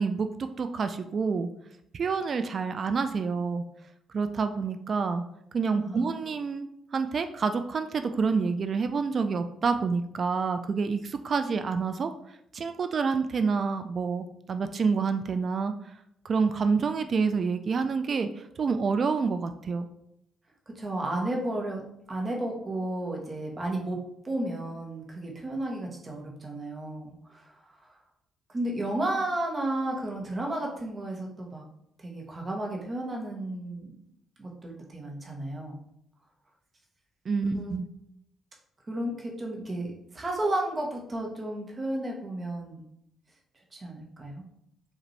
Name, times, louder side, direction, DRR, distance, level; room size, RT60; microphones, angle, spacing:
voice 1, 0.0-1.5 1.9-3.6 4.1-5.2 5.5-12.1 12.5-15.7 16.2-19.9 37.3-37.9, right 5 dB, 45° right, 9 dB, 0.3 m, -28 dB
voice 2, 20.7-21.8 22.1-27.5 28.5-31.6 32.0-33.9 34.4-35.8 37.5-37.8 38.9-42.8 43.7-44.4, right 1 dB, 30° right, 0 dB, 1.1 m, -33 dB
5.0 x 2.6 x 3.2 m, 0.76 s
cardioid pair, 90°, 0 cm